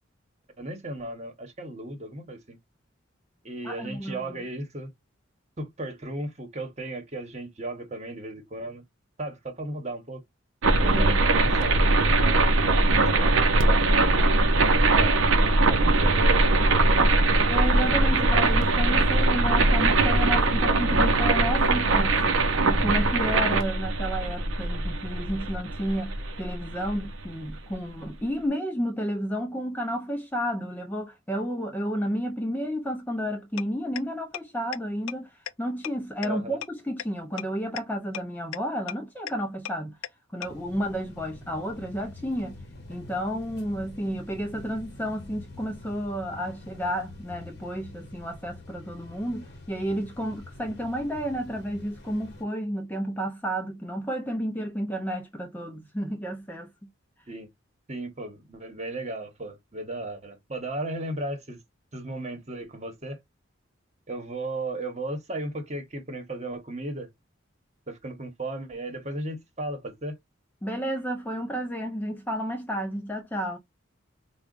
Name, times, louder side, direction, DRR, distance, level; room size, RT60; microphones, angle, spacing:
voice 1, 0.6-2.6 3.4-4.9 5.6-8.8 9.2-10.2 10.8-12.4 12.8-13.9 14.6-15.3 15.6-17.1 36.2-36.6 57.3-57.5 57.9-61.6 61.9-63.2 64.1-67.1 67.9-70.2, right 2 dB, 35° right, 1.1 m, -35 dB
voice 2, 3.6-4.4 10.8-11.2 17.5-22.4 22.7-35.3 35.6-40.0 40.3-42.6 42.9-56.7 70.6-73.6, equal, 10° left, 0.6 m, -31 dB
sound 1, 10.6-27.5, right 2 dB, 80° right, 0.7 m, -21 dB
sound 2, 33.6-33.7 34.0-34.1 34.3-34.4 34.7-34.8 35.1-35.2 35.5-35.6 35.8-35.9 36.2-36.3 36.6-36.7 37.0-37.1 37.4-37.5 37.8-37.9 38.1-38.2 38.5-38.6 38.9-39.0 39.3-39.4 39.7-39.8 40.0-40.1 40.4-40.5, left 11 dB, 80° left, 0.4 m, -33 dB
sound 3, 40.4-52.4, left 2 dB, 55° left, 1.1 m, -46 dB
4.8 x 2.3 x 2.5 m
head